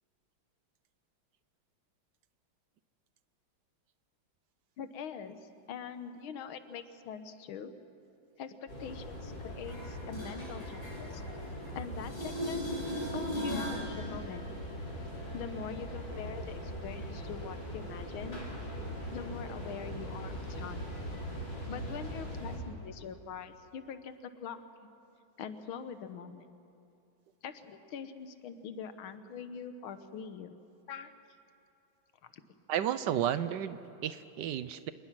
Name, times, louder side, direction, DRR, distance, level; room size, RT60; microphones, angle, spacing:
voice 1, 4.8-5.4 5.7-7.7 8.4-11.2 11.7-12.7 13.1-14.5 15.3-18.5 19.1-20.8 21.7-24.6 25.4-26.4 27.4-30.6 30.9-31.1 32.3-32.4, left 7 dB, 90° left, 10 dB, 1.8 m, -43 dB
sound 1, 8.7-22.6, equal, 60° left, 4.7 m, -41 dB
sound 2, 9.6-11.7 12.0-13.9 19.6-19.7, equal, 20° left, 6.6 m, -38 dB
voice 2, 32.7-34.9, right 10 dB, 70° right, 13 dB, 1.2 m, -32 dB
26.5 x 19.5 x 6.0 m, 2.6 s
omnidirectional pair, 2.2 m